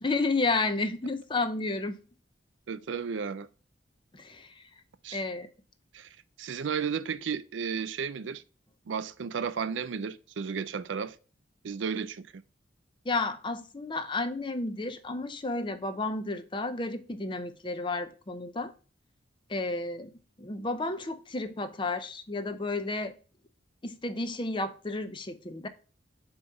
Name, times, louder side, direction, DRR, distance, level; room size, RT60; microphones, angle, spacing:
voice 1, 0.0-2.0 4.1-4.7 5.1-5.5 13.0-18.7 19.5-20.1 20.4-23.1 23.8-25.7, left 3 dB, 25° left, 0.6 m, -32 dB
voice 2, 2.7-3.5 5.0-5.2 5.9-8.4 8.9-11.2 11.6-12.4, right 6 dB, 80° right, 0.4 m, -33 dB
7.3 x 3.0 x 5.1 m
head